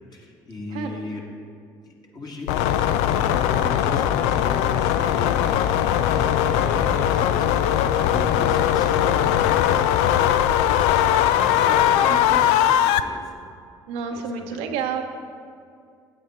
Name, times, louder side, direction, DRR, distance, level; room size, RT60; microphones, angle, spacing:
voice 1, 0.1-1.2 1.8-13.2 14.1-14.7, left 1 dB, 40° left, -1 dB, 2.0 m, -36 dB
voice 2, 0.7-1.0 12.1-12.5 13.9-15.0, right 6 dB, 75° right, 4 dB, 0.9 m, -30 dB
sound 1, 2.5-13.0, left 10 dB, 80° left, 0.4 m, -20 dB
8.8 x 7.9 x 4.3 m, 2.3 s
hypercardioid pair, 65°, 11 cm